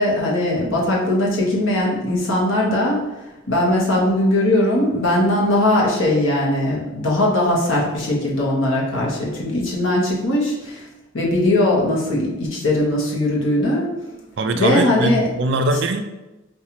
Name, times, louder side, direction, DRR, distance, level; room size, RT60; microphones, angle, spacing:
voice 1, 0.0-3.0 3.5-10.9 11.1-13.9 14.5-15.3, left 1 dB, 80° left, -4 dB, 1.0 m, -19 dB
voice 2, 14.4-16.0, right 2 dB, 55° right, 6 dB, 0.3 m, -21 dB
5.4 x 2.4 x 2.9 m, 1.0 s
head